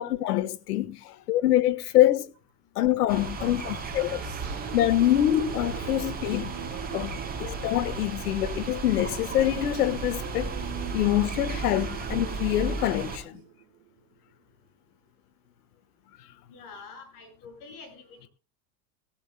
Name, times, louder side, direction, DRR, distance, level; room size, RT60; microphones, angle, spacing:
voice 1, 0.0-2.3 2.7-4.2 4.7-6.5 6.9-10.6 10.9-13.4, left 13 dB, 85° left, 1.4 m, -25 dB
sound 1, 3.1-13.2, right 4 dB, 20° right, 6.4 m, -35 dB
sound 2, 4.1-14.1, right 16 dB, 60° right, 3.7 m, -43 dB
sound 3, 4.4-6.7 7.0-7.4 8.4-8.7 10.1-10.4, right 6 dB, 40° right, 2.9 m, -46 dB
voice 2, 16.5-18.3, left 4 dB, 45° left, 7.7 m, -46 dB
17.0 x 16.0 x 2.2 m
supercardioid pair, 125°, 45 cm